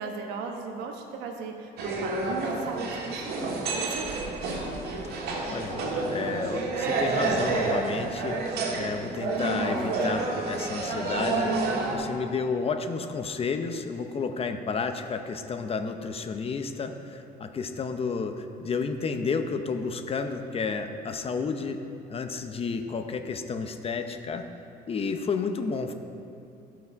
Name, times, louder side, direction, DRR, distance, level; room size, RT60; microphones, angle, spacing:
voice 1, 0.0-4.4, right 4 dB, 90° right, 3 dB, 1.2 m, -37 dB
sound 1, 1.8-11.9, right 3 dB, 70° right, 1.8 m, -29 dB
voice 2, 5.5-8.4 8.7-11.5 11.9-21.8 22.1-24.5 24.9-25.9, left 5 dB, 35° left, 7 dB, 0.7 m, -31 dB
14.5 x 6.1 x 4.6 m, 2.7 s
cardioid pair, 110°, 17 cm